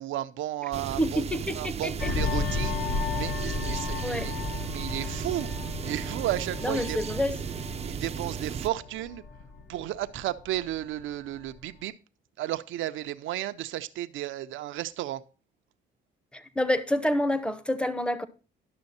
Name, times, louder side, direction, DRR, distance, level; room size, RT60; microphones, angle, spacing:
voice 1, 0.0-1.2 1.5-4.4 4.7-7.0 7.8-9.2 9.7-12.0 12.4-15.2, right 14 dB, 80° right, 0.5 m, -33 dB
sound 1, 0.7-8.7, right 7 dB, 30° right, 0.4 m, -35 dB
voice 2, 1.0-2.1 4.0-4.3 6.6-7.4 16.3-18.3, left 1 dB, 5° left, 0.8 m, -28 dB
sound 2, 2.0-11.0 11.4-11.6, left 4 dB, 60° left, 1.1 m, -34 dB
10.5 x 6.3 x 4.1 m
cardioid pair, 90°, 20 cm